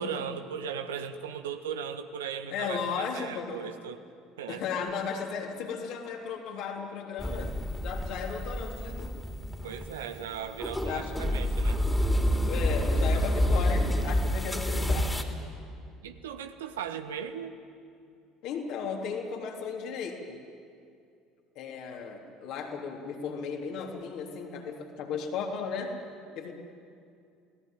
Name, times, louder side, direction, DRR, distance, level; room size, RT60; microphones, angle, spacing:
voice 1, 0.0-4.0 4.4-4.6 8.1-8.2 9.6-11.8 16.0-17.6, right 7 dB, 75° right, 9 dB, 1.3 m, -37 dB
voice 2, 2.5-3.6 4.5-7.6 7.8-9.2 10.9-11.2 12.4-15.2 18.4-20.4 21.6-26.0 26.4-26.5, left 6 dB, 55° left, 1 dB, 3.5 m, -35 dB
sound 1, 7.2-15.2, left 1 dB, 10° left, 3.2 m, -28 dB
28.0 x 18.0 x 9.3 m, 2.4 s
figure-of-eight pair, 65°, 0 cm